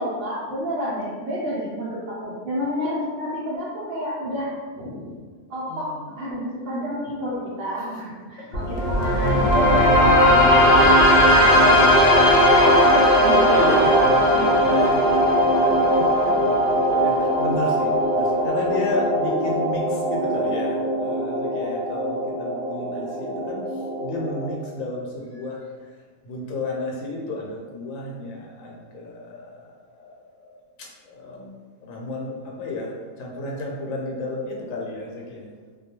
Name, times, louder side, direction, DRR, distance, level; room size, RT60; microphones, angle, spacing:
voice 1, 0.0-5.1 5.5-11.9 12.3-14.0 14.3-14.6, equal, 55° right, -8 dB, 0.6 m, -29 dB
voice 2, 5.7-6.1 8.4-9.0 13.1-15.2 15.5-25.9 26.2-30.5 30.8-31.5 31.8-35.5, left 2 dB, 80° left, -2 dB, 1.0 m, -32 dB
sound 1, 8.5-24.5, equal, 60° left, 0.7 m, -19 dB
2.3 x 2.2 x 2.8 m, 1.5 s
omnidirectional pair, 1.4 m